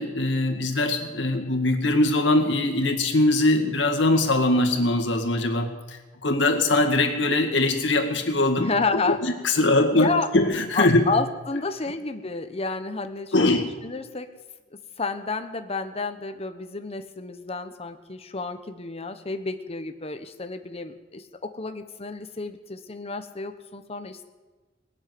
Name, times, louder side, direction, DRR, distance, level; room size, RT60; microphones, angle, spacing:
voice 1, 0.0-8.7 9.1-10.1 10.3-11.0 13.3-13.6, left 2 dB, 85° left, 4 dB, 2.0 m, -22 dB
voice 2, 8.6-9.2 9.9-10.3 10.7-14.3 15.0-24.2, left 3 dB, 35° left, 8 dB, 1.1 m, -30 dB
20.0 x 7.4 x 9.4 m, 1.3 s
head